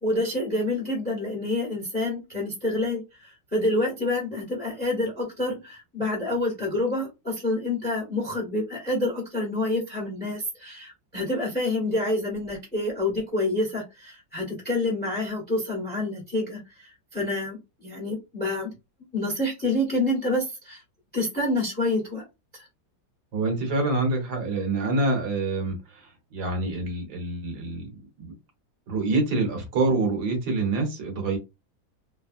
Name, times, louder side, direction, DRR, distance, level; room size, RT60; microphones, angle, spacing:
voice 1, 0.0-18.7 19.1-20.8 21.1-22.2 22.5-22.6, left 2 dB, 5° left, -1 dB, 0.9 m, -28 dB
voice 2, 23.3-27.9 28.2-28.3 28.9-31.4, right 2 dB, 60° right, 2 dB, 1.6 m, -26 dB
3.4 x 2.2 x 2.4 m, 0.24 s
omnidirectional pair, 2.0 m